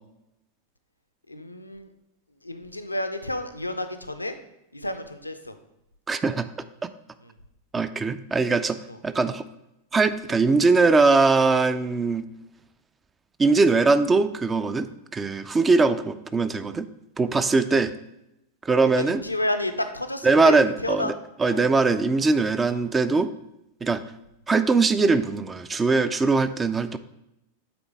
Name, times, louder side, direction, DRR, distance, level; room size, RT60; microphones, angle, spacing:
voice 1, 1.3-1.9 2.4-4.3 4.7-5.5 7.2-7.3 8.9-9.0 19.0-21.1 21.4-21.6 22.7-22.8, left 1 dB, 85° left, 8 dB, 0.5 m, -30 dB
voice 2, 6.1-6.5 6.8-6.9 7.7-8.8 9.0-9.4 9.9-12.2 13.4-16.9 17.2-17.9 18.6-19.2 20.2-21.1 21.4-23.3 23.8-24.0 24.5-27.0, right 3 dB, 15° right, 12 dB, 0.3 m, -21 dB
8.7 x 3.8 x 3.5 m, 0.86 s
figure-of-eight pair, 90°, 0 cm